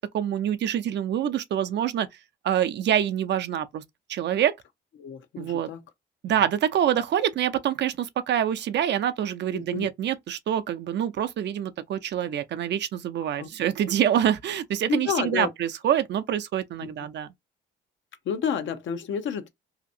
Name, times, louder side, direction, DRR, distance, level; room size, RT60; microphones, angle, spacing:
voice 1, 0.0-2.1 2.4-3.8 4.1-4.6 5.4-5.7 6.2-17.3, right 10 dB, 60° right, 0.5 m, -26 dB
voice 2, 5.0-5.8 9.5-9.9 13.4-13.5 14.9-15.5 16.8-17.1 18.2-19.5, left 7 dB, 70° left, 0.8 m, -30 dB
2.8 x 2.5 x 2.6 m
cardioid pair, 90°, 20 cm